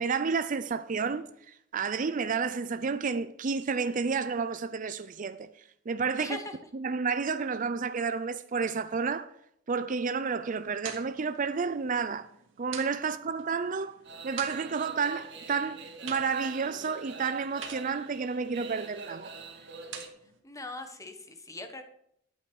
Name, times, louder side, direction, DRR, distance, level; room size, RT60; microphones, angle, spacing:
voice 1, 0.0-5.5 5.9-6.4 6.7-9.3 9.7-12.3 12.6-14.0 14.2-19.3, right 5 dB, 45° right, 0.5 m, -31 dB
voice 2, 6.2-6.5 20.4-21.8, left 2 dB, 15° left, 1.4 m, -40 dB
sound 1, 10.3-20.4, right 7 dB, 85° right, 2.0 m, -48 dB
sound 2, 14.0-20.1, right 3 dB, 65° right, 1.9 m, -45 dB
12.5 x 8.9 x 4.7 m
head